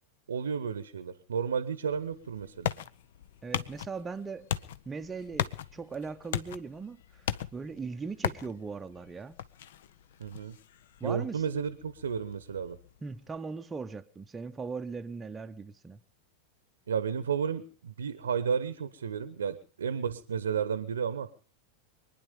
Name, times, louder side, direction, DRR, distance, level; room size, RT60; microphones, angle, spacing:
voice 1, 0.3-2.7 10.2-10.5 11.0-12.8 16.9-21.3, right 6 dB, 70° right, 0.9 m, -32 dB
sound 1, 1.9-13.4, left 10 dB, 55° left, 0.7 m, -39 dB
voice 2, 3.4-4.5 4.9-9.4 11.0-11.4 13.0-16.0, right 4 dB, 15° right, 0.8 m, -39 dB
24.5 x 10.5 x 5.3 m
figure-of-eight pair, 90°, 0 cm